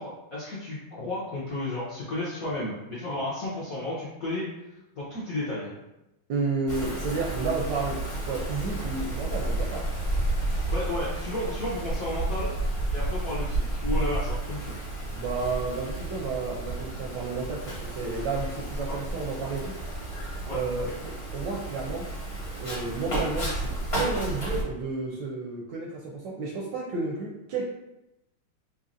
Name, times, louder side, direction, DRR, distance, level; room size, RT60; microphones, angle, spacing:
voice 1, 0.0-4.5 5.0-5.7 10.7-12.5 12.9-14.8 18.9-19.0 20.4-20.6 20.8-20.9, left 1 dB, 65° left, -8 dB, 0.8 m, -33 dB
voice 2, 6.3-9.9 15.1-19.7 20.5-22.1 22.6-27.7, right 3 dB, 75° right, -2 dB, 1.1 m, -32 dB
Wind, 6.7-24.6, right 1 dB, 50° left, 0.4 m, -31 dB
4.0 x 3.0 x 2.5 m, 0.92 s
omnidirectional pair, 2.4 m